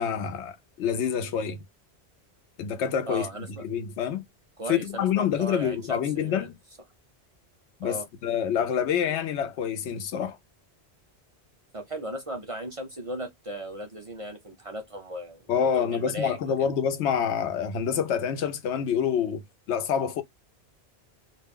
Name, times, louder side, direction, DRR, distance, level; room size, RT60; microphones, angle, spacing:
voice 1, 0.0-1.6 2.6-4.2 4.7-6.5 7.8-10.4 15.5-19.4 19.7-20.2, left 8 dB, 85° left, 0.9 m, -27 dB
voice 2, 3.1-3.6 4.6-6.5 7.8-8.1 11.7-16.5, right 1 dB, 40° right, 0.5 m, -37 dB
2.3 x 2.1 x 3.5 m
omnidirectional pair, 1.1 m